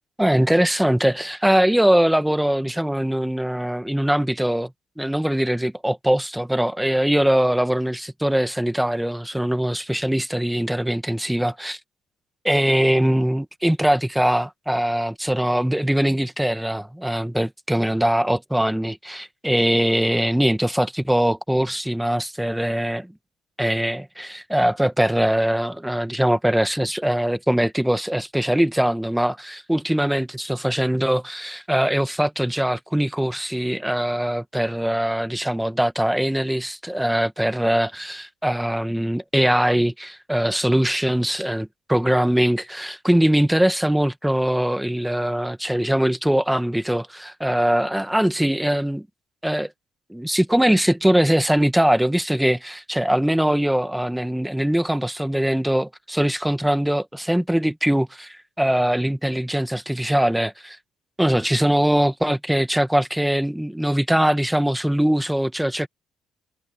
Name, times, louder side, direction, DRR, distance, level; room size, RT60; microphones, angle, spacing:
voice 1, 0.2-4.7 5.0-11.8 12.4-23.1 23.6-49.1 49.4-49.7 50.1-60.8 61.2-65.9, right 1 dB, 5° right, 1.9 m, -21 dB
hypercardioid pair, 55°, 0 cm